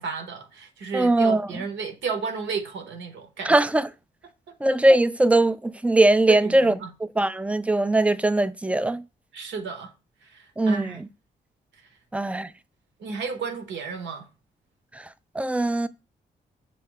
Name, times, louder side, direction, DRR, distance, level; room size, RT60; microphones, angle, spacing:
voice 1, 0.0-3.6 6.3-6.9 9.3-9.9 10.3-11.0 13.0-14.3, right 5 dB, 75° right, 0.9 m, -32 dB
voice 2, 0.9-1.5 3.4-3.9 4.6-6.7 7.2-9.0 10.6-11.1 12.1-12.5 15.4-15.9, right 2 dB, 5° right, 0.3 m, -20 dB
6.3 x 2.2 x 3.7 m
supercardioid pair, 50°, 19 cm